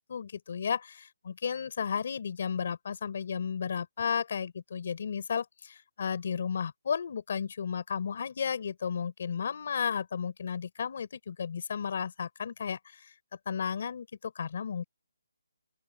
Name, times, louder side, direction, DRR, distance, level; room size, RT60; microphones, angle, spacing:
voice 1, 0.0-13.1 13.5-14.8, left 7 dB, 40° left, 3.7 m, -33 dB
open air
hypercardioid pair, 175°, 0 cm